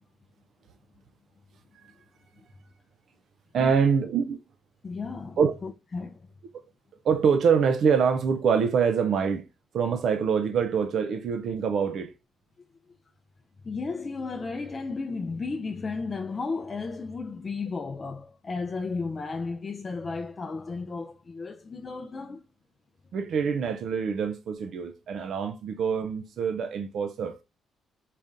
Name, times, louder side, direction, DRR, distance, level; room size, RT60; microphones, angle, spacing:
voice 1, 3.5-4.4 5.4-5.5 7.0-9.5 9.7-12.1 23.1-27.4, right 6 dB, 65° right, 0.4 m, -25 dB
voice 2, 4.8-6.2 13.6-22.4, left 4 dB, 35° left, 0.4 m, -34 dB
4.1 x 3.5 x 2.5 m
cardioid pair, 90°, 0 cm